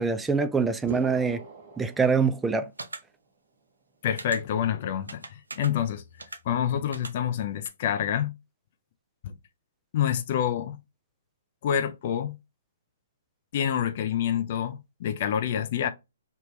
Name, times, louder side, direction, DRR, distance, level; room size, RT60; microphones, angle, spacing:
voice 1, 0.0-1.4 1.8-2.7, right 5 dB, 10° right, 0.4 m, -24 dB
sound 1, 0.9-2.8, right 3 dB, 40° right, 1.0 m, -42 dB
sound 2, 2.8-3.0 4.2-4.4 5.1-5.7 6.2-6.4 6.9-7.1 7.6-7.7, right 3 dB, 85° right, 0.7 m, -38 dB
voice 2, 4.0-6.0 6.4-8.3 9.2-9.3 9.9-10.8 11.6-12.4 13.5-15.9, left 9 dB, 45° left, 0.5 m, -27 dB
3.5 x 2.8 x 3.2 m
figure-of-eight pair, 130°, 0 cm